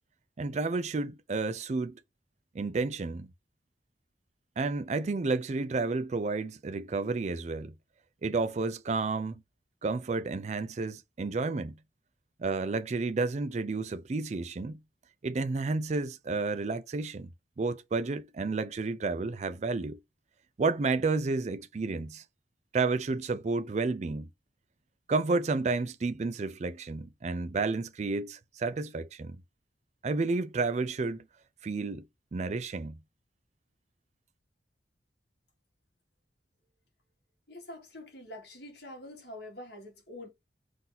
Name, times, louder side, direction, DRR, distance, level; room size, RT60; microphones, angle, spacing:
voice 1, 0.4-2.0 2.5-3.3 4.6-7.7 8.2-9.4 9.8-11.8 12.4-14.8 15.2-17.3 17.6-20.0 20.6-22.2 22.7-24.3 25.1-29.4 30.0-31.2 31.6-32.0 32.3-33.0, right 3 dB, 35° right, 0.4 m, -31 dB
voice 2, 37.5-40.3, left 1 dB, 60° left, 1.8 m, -45 dB
3.9 x 2.7 x 4.0 m
head